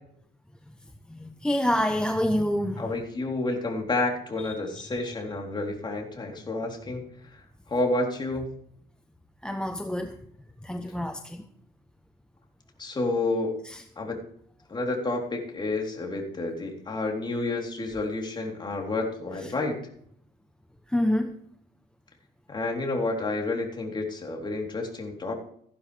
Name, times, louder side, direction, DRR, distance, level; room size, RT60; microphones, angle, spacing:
voice 1, 1.1-2.8 4.8-4.9 9.4-10.2 10.6-11.4 13.7-13.8 20.9-21.4, left 1 dB, 5° left, 7 dB, 0.9 m, -27 dB
voice 2, 2.8-7.0 7.7-8.5 12.8-13.5 14.0-14.2 14.7-19.8 22.5-25.4, left 2 dB, 25° left, 1 dB, 3.7 m, -30 dB
15.0 x 12.0 x 3.5 m, 0.65 s
cardioid pair, 110°, 17 cm